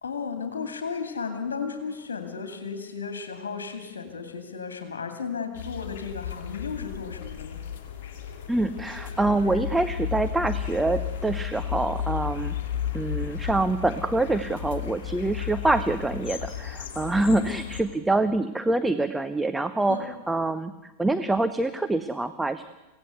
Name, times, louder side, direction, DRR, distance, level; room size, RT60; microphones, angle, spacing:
voice 1, 0.0-7.6 17.3-17.7 19.9-20.1, left 5 dB, 65° left, 7 dB, 2.5 m, -34 dB
sound 1, 5.5-17.8, left 9 dB, 50° left, 2.8 m, -34 dB
voice 2, 8.5-12.6 12.9-22.6, right 2 dB, 5° right, 10 dB, 0.8 m, -25 dB
24.5 x 17.0 x 8.1 m, 1.1 s
figure-of-eight pair, 90°, 0 cm